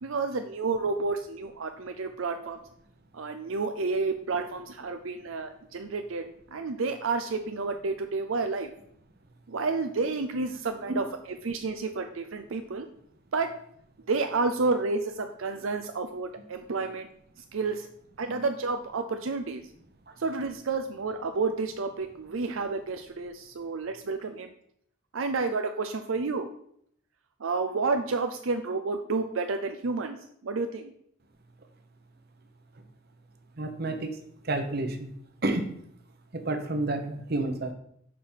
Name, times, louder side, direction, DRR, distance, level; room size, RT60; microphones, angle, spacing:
voice 1, 0.0-2.6 3.1-6.2 6.5-8.7 9.5-12.9 13.3-13.5 14.1-17.1 17.5-17.9 18.2-19.6 20.2-24.5 25.1-26.5 27.4-30.2 30.4-30.9, right 3 dB, 80° right, 7 dB, 0.6 m, -30 dB
voice 2, 33.6-34.1 34.4-35.1 35.4-35.8 36.3-37.7, right 2 dB, 50° right, 6 dB, 1.1 m, -30 dB
6.8 x 5.1 x 5.6 m, 0.68 s
head